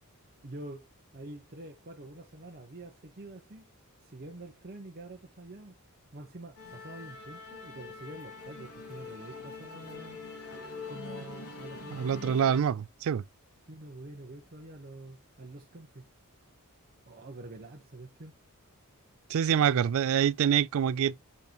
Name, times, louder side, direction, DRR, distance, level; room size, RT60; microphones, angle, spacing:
voice 1, 0.4-0.9 1.1-3.7 4.0-5.7 6.1-10.2 10.9-12.4 13.7-16.1 17.1-18.4, right 2 dB, 45° right, 1.1 m, -46 dB
Musical instrument, 6.6-12.6, left 4 dB, 75° left, 2.2 m, -44 dB
voice 2, 11.9-13.2 19.3-21.2, right 8 dB, 65° right, 0.3 m, -26 dB
6.8 x 5.2 x 3.0 m
head